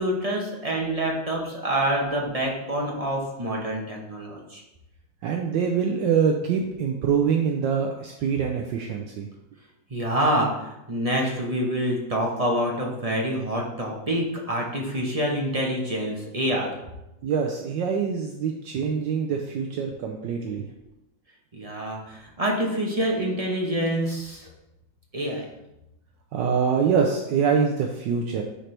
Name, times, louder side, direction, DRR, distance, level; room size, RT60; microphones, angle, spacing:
voice 1, 0.0-4.6 9.9-16.7 21.5-24.5 25.1-25.4, right 1 dB, 30° right, -1 dB, 0.7 m, -26 dB
voice 2, 5.2-9.3 17.2-20.7 26.3-28.4, right 6 dB, 70° right, 2 dB, 1.2 m, -24 dB
10.0 x 4.4 x 3.3 m, 0.91 s
omnidirectional pair, 2.2 m